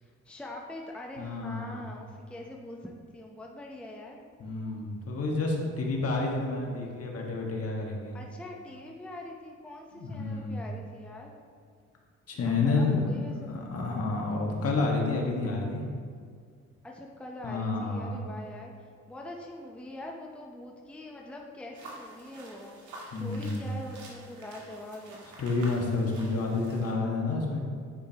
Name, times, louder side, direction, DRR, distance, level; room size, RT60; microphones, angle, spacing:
voice 1, 0.0-4.3 8.1-11.4 12.4-13.7 16.8-22.7 23.0-25.3, left 1 dB, 5° left, 0 dB, 0.7 m, -43 dB
voice 2, 1.2-1.8 4.4-8.1 9.9-10.6 12.3-13.1 13.4-15.8 17.4-18.2 23.1-23.7 25.4-27.6, left 3 dB, 50° left, 0 dB, 1.5 m, -29 dB
sound 1, 21.7-26.9, right 2 dB, 75° right, 1.7 m, -48 dB
9.7 x 5.2 x 2.9 m, 2.1 s
cardioid pair, 90°, 30 cm